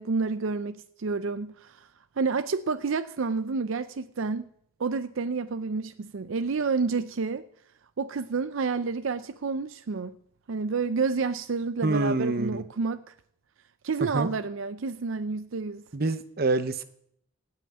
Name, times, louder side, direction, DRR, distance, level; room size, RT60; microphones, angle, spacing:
voice 1, 0.0-1.9 2.2-4.5 4.8-7.4 8.0-10.2 10.5-13.0 13.8-15.8, right 4 dB, 75° right, 0.5 m, -29 dB
voice 2, 11.8-12.6 14.1-14.3 15.9-16.8, right 2 dB, 45° right, 0.8 m, -26 dB
17.0 x 5.8 x 8.7 m
head